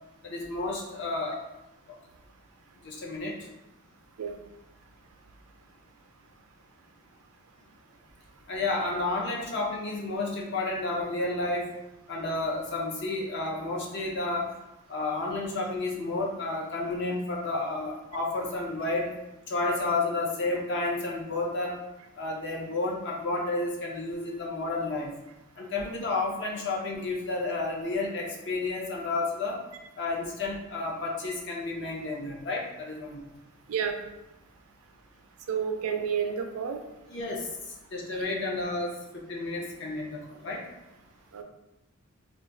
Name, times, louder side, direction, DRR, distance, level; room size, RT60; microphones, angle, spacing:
voice 1, 0.2-1.4 2.8-3.3 8.5-11.7 12.1-14.5 14.9-19.1 19.5-21.8 22.2-25.1 25.6-29.6 30.0-33.3 37.1-40.6, left 2 dB, 55° left, -1 dB, 0.6 m, -31 dB
voice 2, 35.5-36.8 41.3-41.4, right 7 dB, 85° right, 5 dB, 0.4 m, -30 dB
2.3 x 2.3 x 3.7 m, 0.94 s
head